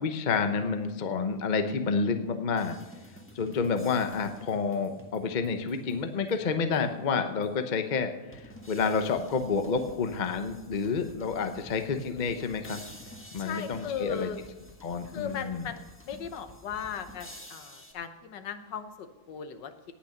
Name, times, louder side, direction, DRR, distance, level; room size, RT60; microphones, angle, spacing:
voice 1, 0.0-2.8 3.3-8.1 8.7-12.8 13.3-14.3 14.8-15.7, left 5 dB, 45° left, 7 dB, 0.5 m, -29 dB
sound 1, 2.6-7.0 7.4-7.5 8.3-17.9, left 1 dB, 5° left, 1.3 m, -50 dB
voice 2, 13.4-14.4 15.1-19.7, left 7 dB, 65° left, 10 dB, 1.5 m, -37 dB
18.0 x 6.1 x 6.7 m, 1.1 s
omnidirectional pair, 2.2 m